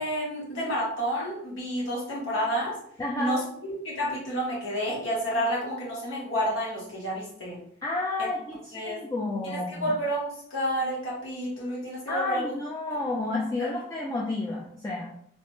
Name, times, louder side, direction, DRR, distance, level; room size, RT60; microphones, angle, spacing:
voice 1, 0.0-2.7 3.1-3.4 3.7-7.6 8.2-8.3 8.7-9.0 9.4-12.5 13.6-13.7, equal, 75° left, -4 dB, 1.0 m, -30 dB
voice 2, 3.0-3.4 7.8-9.9 12.1-15.1, left 2 dB, 15° left, -4 dB, 0.3 m, -31 dB
3.1 x 2.1 x 3.0 m, 0.66 s
head